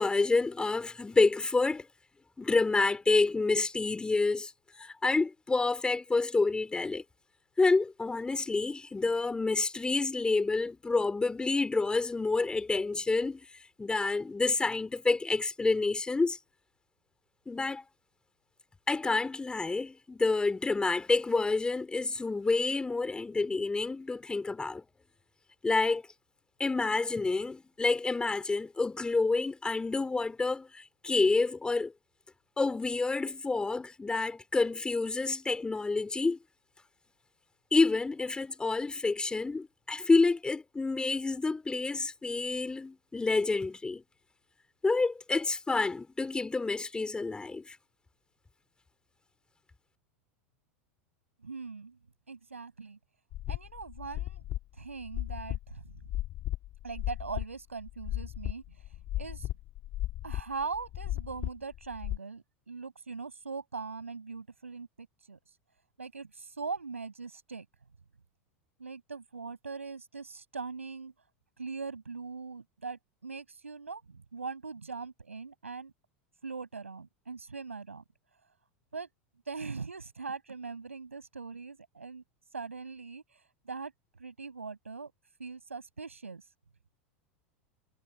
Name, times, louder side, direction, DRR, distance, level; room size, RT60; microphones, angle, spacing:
voice 1, 0.0-1.9 2.4-4.5 4.8-7.0 7.6-13.4 13.8-16.4 17.5-17.8 18.9-24.8 25.6-26.0 26.6-31.9 32.6-36.4 37.7-44.0 44.8-47.8, left 3 dB, 15° left, 4.2 m, -28 dB
voice 2, 51.4-52.0 52.3-53.0 53.5-54.4 54.8-56.1 56.8-58.6 59.2-59.5 60.2-65.4 66.0-67.6 68.8-71.1 71.6-75.9 76.4-78.0 78.9-79.1 79.5-82.2 82.5-83.2 83.6-83.9 84.2-85.1 85.4-86.4, right 4 dB, 90° right, 6.7 m, -41 dB
sound 1, 53.3-57.5 57.8-62.2, left 15 dB, 45° left, 2.6 m, -36 dB
hypercardioid pair, 85°, 7 cm